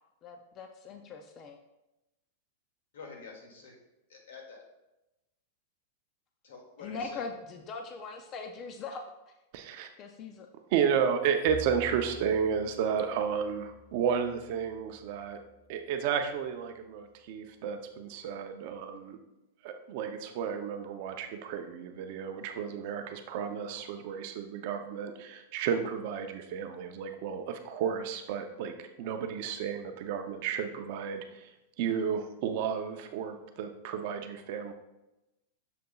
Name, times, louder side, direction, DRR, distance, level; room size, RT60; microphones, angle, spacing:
voice 1, 0.2-1.6 6.8-9.4 10.0-10.5, left 4 dB, 20° left, 5 dB, 0.3 m, -41 dB
voice 2, 2.9-3.8 4.1-4.6 6.4-7.2, left 4 dB, 85° left, 0 dB, 2.0 m, -47 dB
voice 3, 9.5-9.9 10.7-15.4 15.7-19.2 19.6-31.5 31.8-34.7, right 7 dB, 35° right, 6 dB, 0.5 m, -32 dB
Bowed string instrument, 11.5-15.8, right 1 dB, ahead, 2.3 m, -49 dB
6.7 x 6.6 x 2.3 m, 0.95 s
supercardioid pair, 180°, 0 cm